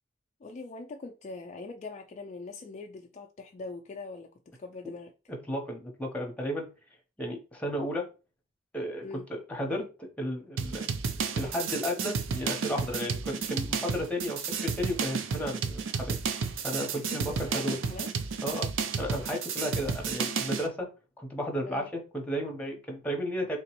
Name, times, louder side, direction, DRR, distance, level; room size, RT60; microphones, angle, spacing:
voice 1, 0.4-5.1 9.0-9.2 16.9-18.1 21.6-21.9, left 3 dB, 35° left, 3 dB, 0.3 m, -42 dB
voice 2, 5.3-6.7 7.2-8.0 8.7-9.0 9.3-9.9 10.2-10.9 11.4-16.2 16.6-17.8 18.4-18.7 19.0-20.9 21.2-23.6, equal, 5° left, 1 dB, 0.8 m, -33 dB
sound 1, 10.6-20.7, right 5 dB, 80° right, 0.5 m, -32 dB
3.7 x 2.9 x 3.0 m, 0.32 s
head